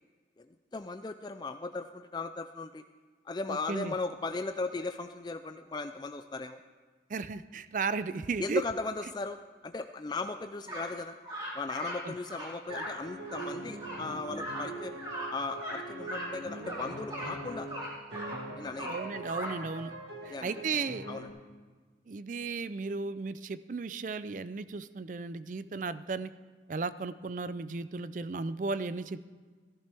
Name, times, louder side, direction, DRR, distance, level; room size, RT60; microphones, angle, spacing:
voice 1, 0.7-2.8 3.3-6.6 8.4-11.1 11.5-14.9 15.3-17.7 18.6-19.0 20.3-20.6 21.1-21.3, left 3 dB, 25° left, 8 dB, 0.3 m, -37 dB
voice 2, 3.5-3.9 7.1-8.6 12.0-12.1 18.9-19.9 20.3-21.1 22.1-26.3 26.7-29.3, right 4 dB, 45° right, 14 dB, 0.4 m, -35 dB
sound 1, 10.7-10.9 11.2-12.0 12.2-12.9 13.2-13.5 13.8-14.0 14.4-14.6 15.0-15.3 15.6-15.8 16.0-16.3 16.6-17.3 17.7-18.4 18.8-19.5, right 1 dB, 25° right, 3.6 m, -38 dB
sound 2, 12.7-21.3, right 1 dB, 80° right, 1.6 m, -43 dB
14.5 x 14.5 x 3.4 m, 1.5 s
head